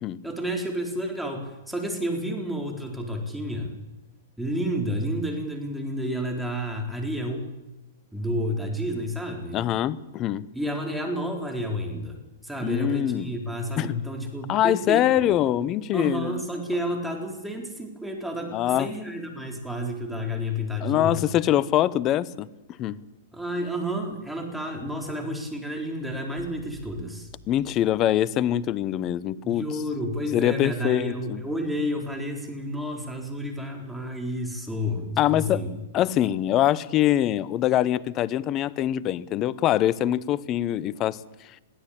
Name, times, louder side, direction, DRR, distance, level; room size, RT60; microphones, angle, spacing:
voice 1, 0.2-3.7 4.4-7.5 8.1-9.6 10.5-12.2 12.4-15.2 15.9-21.2 23.3-27.3 29.4-35.7, equal, ahead, 2 dB, 4.3 m, -30 dB
voice 2, 9.5-10.5 12.6-13.3 13.8-13.9 14.5-16.4 18.5-18.9 20.8-22.5 22.8-23.0 27.5-29.6 30.3-31.4 35.2-35.6 35.9-41.6, left 12 dB, 35° left, 20 dB, 0.8 m, -24 dB
sound 1, 26.4-28.5, right 6 dB, 60° right, 7.3 m, -50 dB
22.0 x 15.5 x 8.8 m, 1.0 s
hypercardioid pair, 120°, 0 cm